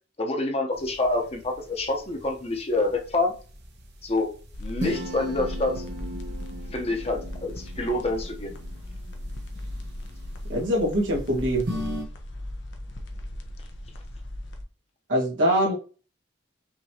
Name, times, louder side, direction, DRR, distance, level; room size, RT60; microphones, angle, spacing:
voice 1, 0.2-3.3 4.0-4.3 4.6-5.7 6.7-8.5, left 2 dB, 35° left, 2 dB, 0.9 m, -27 dB
sound 1, 0.7-12.0, equal, 60° right, 1.0 m, -39 dB
sound 2, 4.5-14.6, left 1 dB, 75° left, 0.8 m, -37 dB
voice 2, 10.5-11.7 15.1-15.7, equal, 80° right, -4 dB, 1.9 m, -23 dB
5.8 x 3.0 x 2.9 m, 0.37 s
head